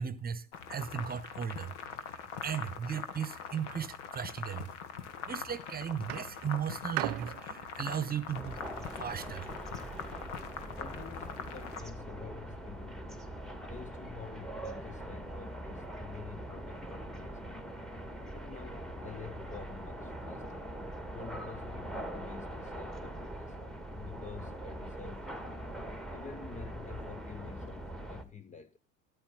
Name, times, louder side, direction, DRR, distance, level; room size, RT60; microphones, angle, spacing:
voice 1, 0.0-1.8 2.1-4.7 5.2-10.2, right 8 dB, 25° right, 1.3 m, -37 dB
sound 1, 0.5-11.8, left 7 dB, 65° left, 1.8 m, -43 dB
sound 2, 5.1-5.5 6.1-9.3 10.1-10.2, right 20 dB, 50° right, 0.6 m, -40 dB
sound 3, 8.3-28.2, right 1 dB, ahead, 1.7 m, -42 dB
voice 2, 10.8-13.2 13.7-17.8 18.3-20.7 21.1-23.6 23.9-25.6 26.1-28.8, left 6 dB, 20° left, 0.8 m, -48 dB
13.0 x 12.0 x 3.8 m
figure-of-eight pair, 70°, 38 cm